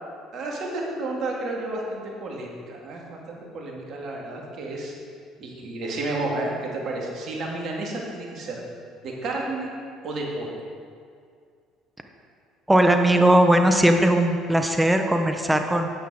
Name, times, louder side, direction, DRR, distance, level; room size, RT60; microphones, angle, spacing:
voice 1, 0.3-4.9 5.4-8.6 9.0-9.7 10.0-10.5, right 2 dB, 55° right, -1 dB, 2.3 m, -31 dB
voice 2, 12.7-15.9, right 1 dB, 10° right, 5 dB, 1.0 m, -19 dB
9.6 x 8.2 x 4.8 m, 2.2 s
hypercardioid pair, 60°, 0 cm